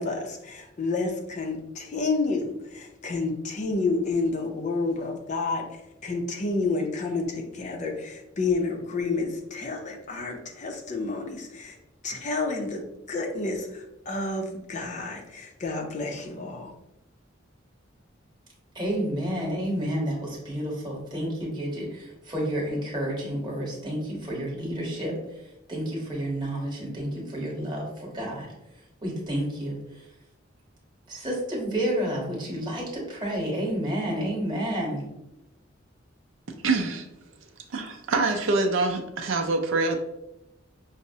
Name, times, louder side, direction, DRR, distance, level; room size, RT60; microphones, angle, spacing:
voice 1, 0.0-5.6 6.0-11.8 12.0-16.7, left 3 dB, 35° left, 2 dB, 0.4 m, -30 dB
voice 2, 18.7-25.2 25.7-27.9 28.1-28.5 29.0-29.8 31.1-35.0, right 1 dB, 20° right, -3 dB, 1.0 m, -30 dB
voice 3, 36.5-37.1 37.7-40.0, right 3 dB, 75° right, 4 dB, 0.5 m, -25 dB
5.4 x 2.0 x 2.6 m, 0.91 s
head